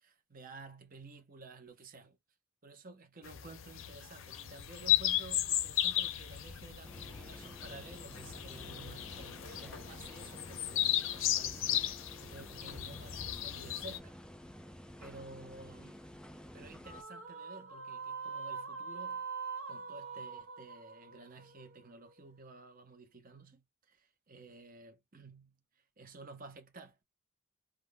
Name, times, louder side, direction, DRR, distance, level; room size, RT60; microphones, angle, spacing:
voice 1, 0.0-2.2 2.6-14.2 15.0-16.0 16.5-19.2 19.7-27.0, right 3 dB, 40° right, 0.8 m, -53 dB
sound 1, 3.2-14.0, left 12 dB, 65° left, 0.5 m, -35 dB
sound 2, 6.8-17.0, equal, 5° left, 0.3 m, -51 dB
sound 3, 16.8-22.3, right 5 dB, 80° right, 0.9 m, -43 dB
3.5 x 2.3 x 2.2 m
head